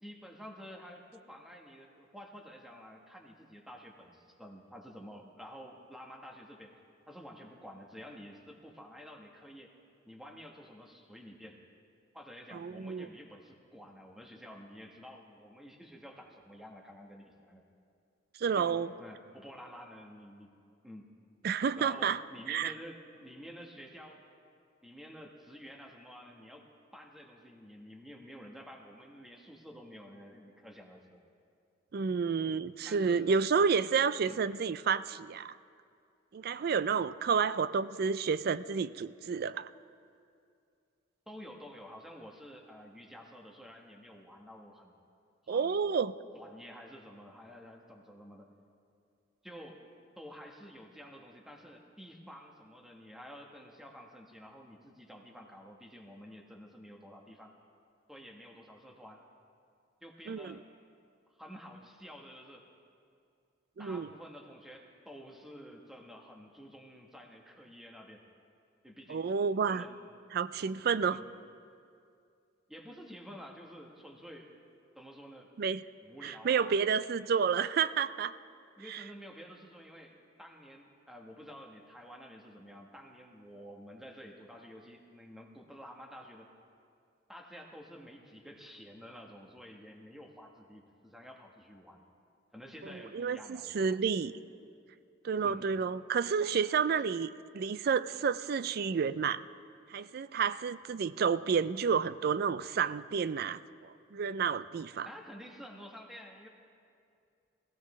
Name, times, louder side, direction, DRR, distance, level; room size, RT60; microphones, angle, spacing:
voice 1, 0.0-6.8 7.1-9.8 10.0-11.6 12.1-17.6 18.6-20.6 20.8-21.1 21.8-24.2 24.8-31.2 32.9-33.3 34.2-34.4 41.3-44.9 45.4-45.8 46.3-48.5 49.4-49.8 50.2-57.5 58.1-59.2 60.0-60.7 61.3-62.7 63.8-68.2 68.8-69.3 69.7-69.9 71.1-71.3 72.7-74.5 74.9-75.5 76.0-76.8 78.8-86.5 87.3-92.0 92.5-94.0 95.4-95.6 105.0-106.5, equal, ahead, 1 dB, 1.2 m, -50 dB
voice 2, 12.5-13.1 18.4-18.9 21.4-22.2 22.5-22.7 31.9-35.6 36.3-39.7 45.5-46.1 60.3-60.6 63.8-64.1 69.1-69.8 70.3-71.2 75.6-75.8 76.2-78.3 78.9-79.0 93.1-94.3 95.2-99.4 99.9-105.1, right 6 dB, 50° right, 16 dB, 0.3 m, -30 dB
20.5 x 15.5 x 3.2 m, 2.4 s
head